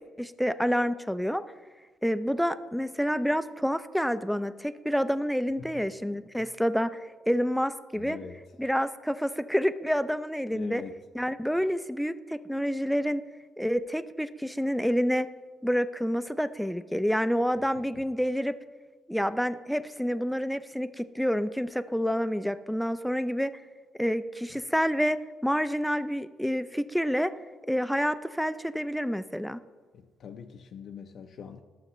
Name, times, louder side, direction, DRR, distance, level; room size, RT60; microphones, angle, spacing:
voice 1, 0.2-1.4 2.0-7.0 7.3-8.2 8.6-10.8 11.2-13.2 13.6-15.3 15.6-18.5 19.1-23.5 24.0-27.3 27.7-29.6, equal, ahead, 12 dB, 0.4 m, -28 dB
voice 2, 5.6-5.9 6.4-6.5 7.9-8.4 10.5-10.9 17.9-18.0 29.9-31.6, left 7 dB, 65° left, 4 dB, 0.5 m, -43 dB
11.5 x 6.6 x 3.0 m, 1.4 s
cardioid pair, 90°, 0 cm